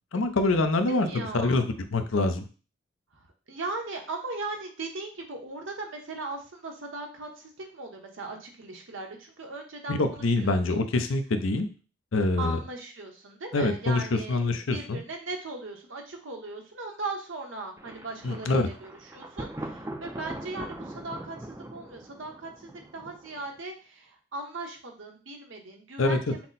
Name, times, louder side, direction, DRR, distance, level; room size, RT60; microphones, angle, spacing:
voice 1, 0.1-2.4 9.9-11.7 12.1-12.6 13.5-15.0 18.2-18.7 26.0-26.3, left 2 dB, 85° left, 8 dB, 0.6 m, -25 dB
voice 2, 0.9-1.6 3.1-10.0 10.4-10.5 12.4-26.5, right 3 dB, 80° right, 2 dB, 1.0 m, -38 dB
Thunder, 17.8-23.6, right 1 dB, 15° right, 0.4 m, -41 dB
5.8 x 2.1 x 4.0 m, 0.36 s
head